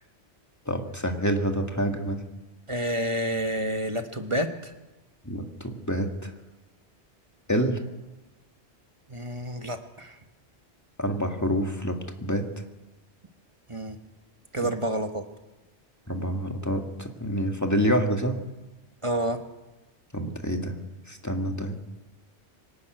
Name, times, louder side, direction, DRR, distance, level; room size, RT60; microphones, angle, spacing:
voice 1, 0.7-2.2 5.2-6.3 7.5-7.8 11.0-12.5 14.6-14.7 16.1-18.4 20.1-20.8 21.1-21.8, equal, 15° left, 3 dB, 2.0 m, -27 dB
voice 2, 2.7-4.5 9.1-10.1 13.7-14.0 14.5-15.2 19.0-19.4, right 1 dB, 25° right, 6 dB, 1.4 m, -28 dB
23.5 x 12.5 x 9.2 m, 1.1 s
omnidirectional pair, 1.2 m